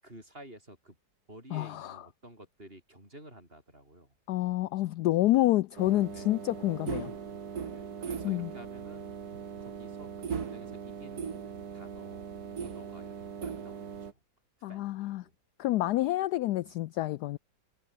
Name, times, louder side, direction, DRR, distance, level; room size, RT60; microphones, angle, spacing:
voice 1, 0.0-1.0 1.3-4.1 6.1-6.4 7.7-9.1 9.6-11.4 11.7-12.3 12.6-13.1 13.4-14.2 14.7-15.3 16.6-16.7, right 1 dB, 30° right, 8.3 m, -52 dB
voice 2, 1.5-2.0 4.3-7.1 8.2-8.5 14.6-15.2 15.6-17.4, left 16 dB, 75° left, 1.0 m, -28 dB
sound 1, 5.8-14.1, right 6 dB, 55° right, 2.2 m, -39 dB
omnidirectional pair, 2.0 m